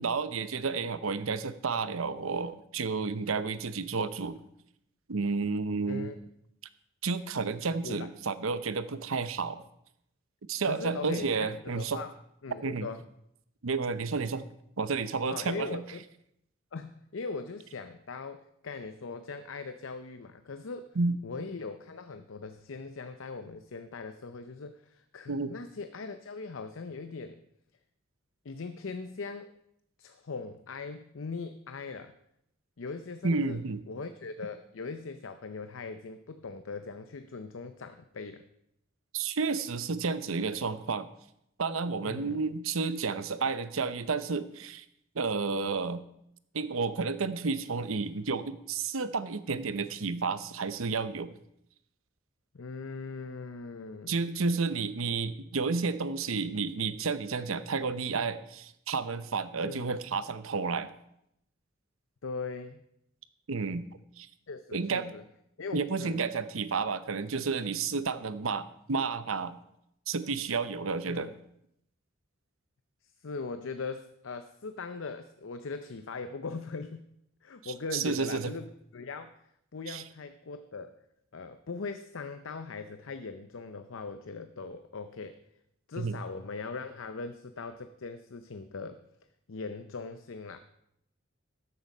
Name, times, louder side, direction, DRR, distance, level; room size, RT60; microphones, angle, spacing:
voice 1, 0.0-4.4 5.1-6.1 7.0-9.6 10.5-12.0 12.6-12.9 13.6-14.4 14.8-15.7 21.0-21.2 25.3-25.6 33.2-33.8 39.1-41.1 41.6-44.8 45.1-46.0 46.5-51.3 54.1-60.9 63.5-63.8 64.2-64.3 64.7-65.1 65.7-69.6 70.1-71.3 77.6-78.5 79.9-80.0 86.0-86.2, right 4 dB, 90° right, 13 dB, 0.7 m, -31 dB
voice 2, 5.9-6.2 7.8-8.1 10.6-12.1 12.4-13.1 15.3-16.0 16.7-21.0 21.2-27.4 28.4-29.5 30.0-32.1 32.8-33.6 33.9-38.4 42.0-42.4 52.5-54.2 59.6-59.9 62.2-62.8 64.5-65.2 65.6-66.2 71.1-71.4 73.2-77.1 77.4-79.4 79.7-80.9 81.3-85.4 85.9-89.0 89.5-90.6, left 4 dB, 80° left, 10 dB, 0.6 m, -40 dB
13.0 x 7.8 x 5.4 m, 0.77 s
head